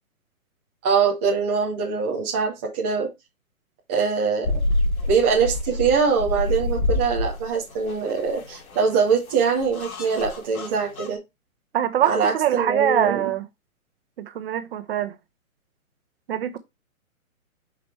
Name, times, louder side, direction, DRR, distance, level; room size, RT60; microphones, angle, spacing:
voice 1, 0.8-3.1 3.9-4.5 5.1-11.2 12.0-13.3, right 5 dB, 10° right, 0.5 m, -23 dB
sound 1, 4.4-11.1, left 2 dB, 75° left, 2.6 m, -28 dB
voice 2, 11.7-13.4 14.2-15.1 16.3-16.6, right 10 dB, 40° right, 1.1 m, -23 dB
7.4 x 5.2 x 3.2 m
hypercardioid pair, 155°, 43 cm